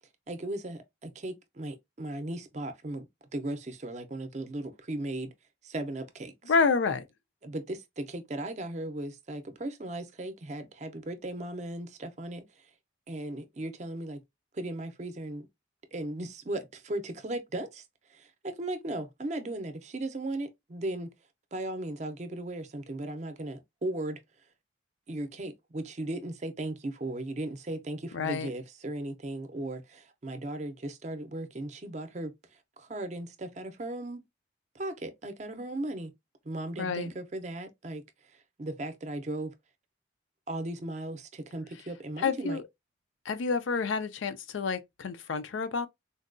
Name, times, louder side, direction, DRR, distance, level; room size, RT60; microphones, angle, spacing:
voice 1, 0.3-3.1 3.3-5.3 5.6-6.5 7.4-12.7 13.1-14.2 14.5-15.5 15.9-17.8 18.1-21.1 21.5-24.2 25.1-34.2 34.7-36.1 36.4-38.0 38.3-39.5 40.5-42.6, right 1 dB, 35° right, 0.5 m, -37 dB
voice 2, 6.5-7.0 28.1-28.5 36.8-37.1 42.2-42.6 43.3-45.9, left 5 dB, 85° left, 0.4 m, -28 dB
3.9 x 2.2 x 2.4 m
head